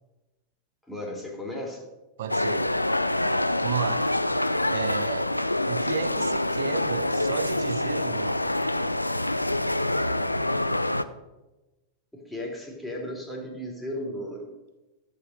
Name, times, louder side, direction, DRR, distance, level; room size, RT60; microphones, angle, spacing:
voice 1, 0.9-1.8 12.1-14.5, left 1 dB, 5° left, 3.2 m, -35 dB
voice 2, 2.2-2.7 3.6-4.0 4.7-5.3 5.7-8.5, right 8 dB, 55° right, 1.0 m, -33 dB
sound 1, 2.3-11.0, left 1 dB, 85° left, 0.5 m, -26 dB
14.0 x 5.6 x 6.5 m
figure-of-eight pair, 90°, 0 cm